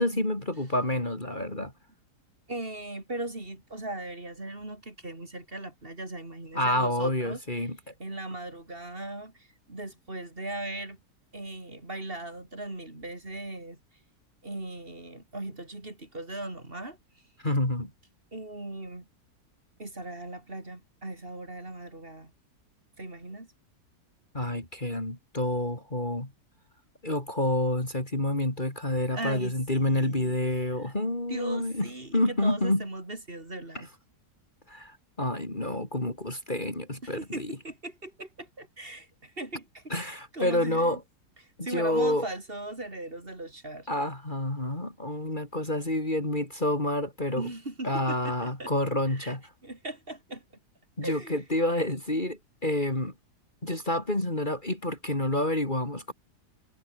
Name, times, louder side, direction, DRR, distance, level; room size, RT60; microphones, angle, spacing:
voice 1, 0.0-1.7 6.5-7.8 17.4-17.9 24.3-26.3 27.0-32.9 33.7-33.8 34.7-37.5 39.9-41.0 41.7-42.3 43.9-47.5 47.8-49.4 51.0-53.1 53.6-56.1, left 1 dB, 30° left, 4.5 m, -28 dB
voice 2, 2.5-7.7 8.0-11.0 11.3-13.8 14.4-17.0 18.3-19.0 19.8-22.3 23.0-23.5 29.1-30.9 31.3-33.9 37.0-41.0 41.6-43.9 47.4-48.7 49.1-49.4 49.6-50.4 51.0-51.4, right 2 dB, 35° right, 4.5 m, -38 dB
omnidirectional pair, 1.8 m